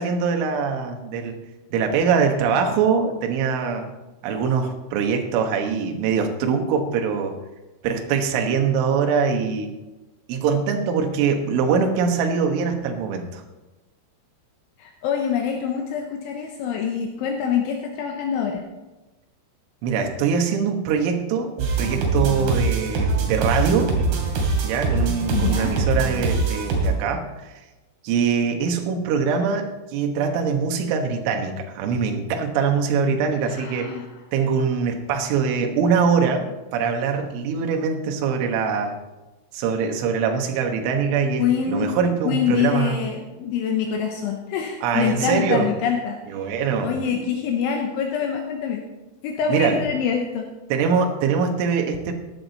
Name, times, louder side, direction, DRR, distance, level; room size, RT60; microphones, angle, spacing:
voice 1, 0.0-1.4 1.7-3.9 4.2-7.4 7.8-9.7 10.3-13.4 19.8-23.9 24.6-27.5 28.0-33.9 34.3-39.0 39.5-43.0 44.8-45.7 46.3-47.2 49.5-49.9 50.7-52.1, right 6 dB, 75° right, 4 dB, 3.6 m, -23 dB
voice 2, 14.8-18.6 25.3-25.8 33.5-34.0 41.4-41.9 42.2-46.2 46.8-48.8 49.2-50.5, left 7 dB, 75° left, 2 dB, 3.3 m, -25 dB
sound 1, 21.6-26.9, right 3 dB, 60° right, 4.0 m, -23 dB
16.0 x 10.5 x 4.0 m, 1.1 s
omnidirectional pair, 5.8 m